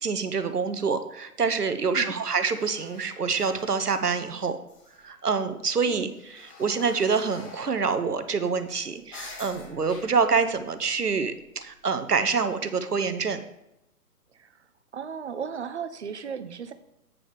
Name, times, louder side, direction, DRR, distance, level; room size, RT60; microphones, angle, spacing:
voice 1, 0.0-4.6 5.0-6.1 6.6-13.4, right 5 dB, 80° right, 10 dB, 0.9 m, -26 dB
voice 2, 1.8-2.2 5.9-6.1 14.3-14.5 14.9-16.7, right 6 dB, 45° right, 11 dB, 0.7 m, -35 dB
sound 1, 2.2-4.4 4.7-5.4 5.8-11.8 12.4-12.5, left 3 dB, 20° left, 1.1 m, -49 dB
8.5 x 4.9 x 5.3 m, 0.87 s
figure-of-eight pair, 130°, 46 cm